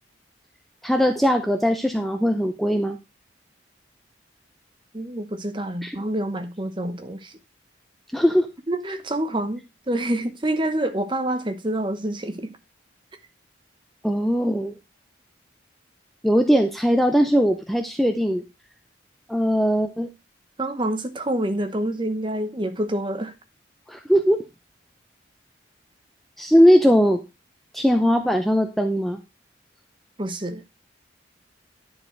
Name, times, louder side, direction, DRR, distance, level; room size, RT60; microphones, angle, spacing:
voice 1, 0.8-3.0 5.8-6.0 8.1-8.5 14.0-14.7 16.2-18.4 19.3-20.1 23.9-24.4 26.4-27.2 27.7-29.2, equal, ahead, 0.5 m, -20 dB
voice 2, 4.9-7.4 8.7-12.5 20.6-23.3 30.2-30.6, right 1 dB, 25° right, 0.9 m, -27 dB
10.5 x 4.7 x 4.5 m
head